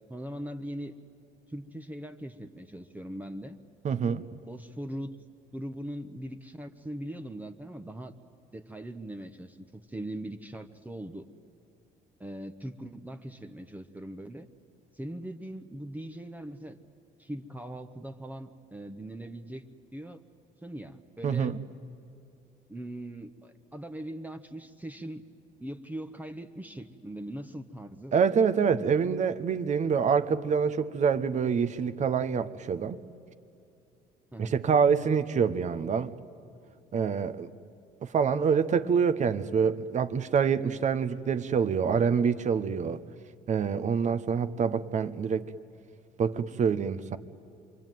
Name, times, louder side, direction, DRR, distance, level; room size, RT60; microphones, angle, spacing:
voice 1, 0.1-0.9 1.5-3.6 4.4-5.2 5.5-8.1 8.5-11.3 12.2-14.5 14.9-16.8 17.2-19.7 19.9-20.2 20.6-21.5 22.7-25.2 25.6-28.2 34.3-34.5, right 1 dB, 10° right, 6 dB, 1.0 m, -40 dB
voice 2, 3.8-4.2 21.2-21.6 28.1-33.0 34.4-36.1 36.9-37.5 38.0-43.0 43.5-45.5 46.2-47.2, right 6 dB, 45° right, 11 dB, 1.0 m, -26 dB
27.5 x 22.5 x 9.3 m, 2.5 s
cardioid pair, 110°, 17 cm